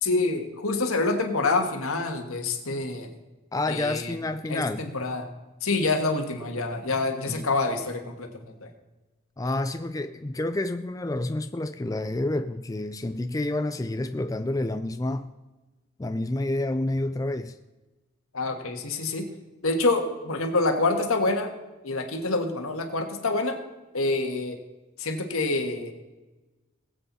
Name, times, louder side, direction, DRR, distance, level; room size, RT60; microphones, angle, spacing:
voice 1, 0.0-3.1 3.7-4.2 4.5-5.3 5.6-8.7 18.3-19.3 19.6-21.5 21.8-23.6 23.9-24.6 25.0-25.9, left 3 dB, 85° left, 1.7 m, -27 dB
voice 2, 3.5-4.9 7.3-7.5 9.4-15.3 16.0-17.6, left 2 dB, 15° left, 0.3 m, -29 dB
20.5 x 7.9 x 4.2 m
head